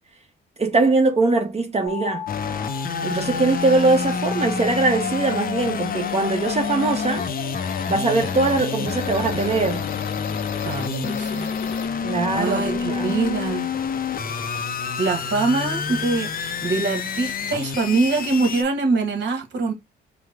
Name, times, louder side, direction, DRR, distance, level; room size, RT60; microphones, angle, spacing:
voice 1, 0.6-2.2 3.0-7.2 7.9-9.8 12.0-13.1, right 3 dB, 30° right, 1.2 m, -21 dB
sound 1, 1.9-11.9, left 7 dB, 80° left, 1.2 m, -34 dB
sound 2, 2.3-18.6, left 6 dB, 45° left, 0.8 m, -28 dB
voice 2, 10.6-13.8 15.0-19.7, right 3 dB, 65° right, 1.8 m, -24 dB
4.7 x 2.3 x 3.6 m
cardioid pair, 90°, 20 cm